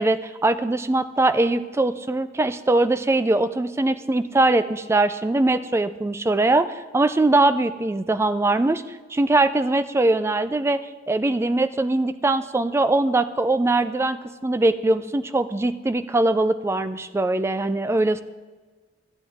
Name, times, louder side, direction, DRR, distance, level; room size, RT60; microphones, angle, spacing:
voice 1, 0.0-10.8 11.1-18.2, right 2 dB, 15° right, 13 dB, 0.3 m, -21 dB
12.5 x 9.1 x 3.5 m, 1.3 s
head